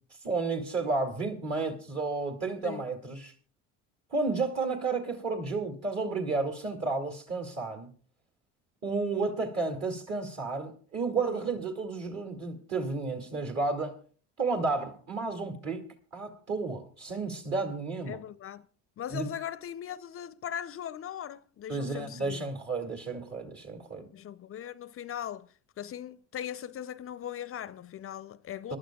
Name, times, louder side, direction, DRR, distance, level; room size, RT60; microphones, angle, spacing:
voice 1, 0.2-3.3 4.1-7.9 8.8-14.0 14.4-15.8 16.1-18.2 19.1-19.3 21.7-24.1 28.7-28.8, right 3 dB, 45° right, 2.3 m, -32 dB
voice 2, 18.1-18.7 19.0-22.4 24.1-28.8, left 10 dB, 35° left, 0.5 m, -39 dB
27.0 x 11.5 x 2.3 m
hypercardioid pair, 65°, 37 cm